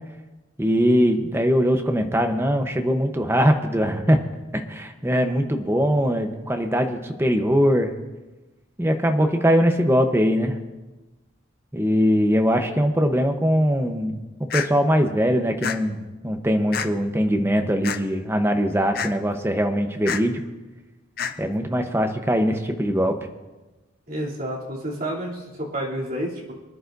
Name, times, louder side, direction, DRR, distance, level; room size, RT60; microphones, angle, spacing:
voice 1, 0.6-4.2 4.7-7.9 8.8-10.6 11.7-14.2 14.5-20.4 21.4-23.2, equal, 10° right, 5 dB, 0.8 m, -21 dB
sound 1, 14.5-14.7 15.6-15.8 16.7-16.9 17.8-18.0 18.9-19.1 20.1-20.2 21.2-21.3, left 7 dB, 45° left, 0.6 m, -27 dB
voice 2, 24.1-26.5, right 1 dB, 45° right, -4 dB, 2.9 m, -30 dB
24.5 x 11.0 x 2.6 m, 1.1 s
head